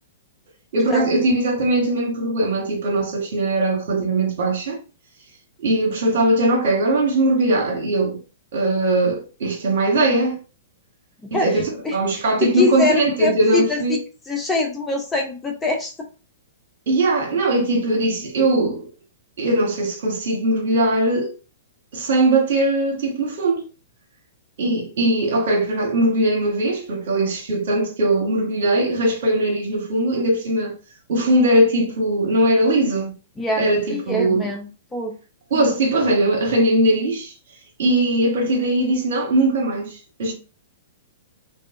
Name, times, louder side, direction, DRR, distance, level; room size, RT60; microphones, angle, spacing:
voice 1, 0.7-4.8 5.6-8.2 8.5-10.4 11.3-14.0 16.9-18.9 19.4-21.3 21.9-23.7 24.6-30.8 31.1-33.1 33.6-34.5 35.5-37.3 37.8-40.3, right 1 dB, 60° right, 1.3 m, -20 dB
voice 2, 12.4-14.0 14.3-15.9 33.4-35.1, left 3 dB, 10° left, 0.6 m, -23 dB
2.5 x 2.4 x 2.6 m
figure-of-eight pair, 110°, 0 cm